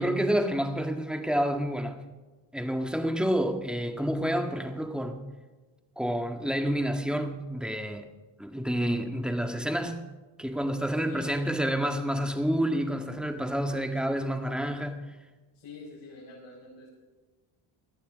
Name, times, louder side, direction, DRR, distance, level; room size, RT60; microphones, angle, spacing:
voice 1, 0.0-2.0 2.5-5.2 6.0-8.0 8.4-10.0 10.4-15.0, equal, ahead, 5 dB, 1.8 m, -29 dB
voice 2, 10.9-11.8 15.5-16.9, left 3 dB, 65° left, -6 dB, 5.8 m, -47 dB
17.5 x 12.0 x 5.1 m, 1.2 s
cardioid pair, 105°, 48 cm